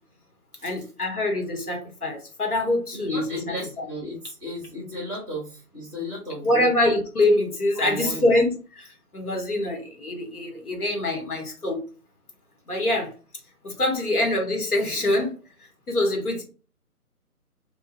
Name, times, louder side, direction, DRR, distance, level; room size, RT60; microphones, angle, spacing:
voice 1, 0.6-3.8 6.4-11.8 12.7-13.1 13.6-15.3 15.6-16.4, left 1 dB, 75° left, 1.1 m, -25 dB
voice 2, 2.9-6.7 7.8-8.3, left 1 dB, 20° left, 0.5 m, -34 dB
2.3 x 2.2 x 2.6 m
figure-of-eight pair, 145°, 45 cm